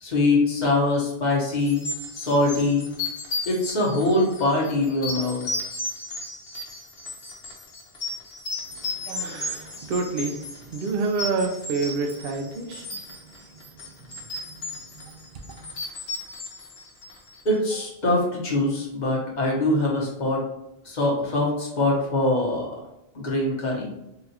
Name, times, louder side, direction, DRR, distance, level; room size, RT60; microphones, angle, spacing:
voice 1, 0.0-1.8 2.1-2.9 3.5-5.4 17.4-20.4 20.8-22.7 23.1-23.9, left 2 dB, 45° left, -3 dB, 1.0 m, -23 dB
sound 1, 1.6-17.5, left 2 dB, 70° left, 1.0 m, -35 dB
voice 2, 8.7-12.9 13.2-13.3 14.0-15.7, right 3 dB, 65° right, 4 dB, 0.7 m, -30 dB
3.9 x 2.4 x 2.8 m, 0.88 s
omnidirectional pair, 1.1 m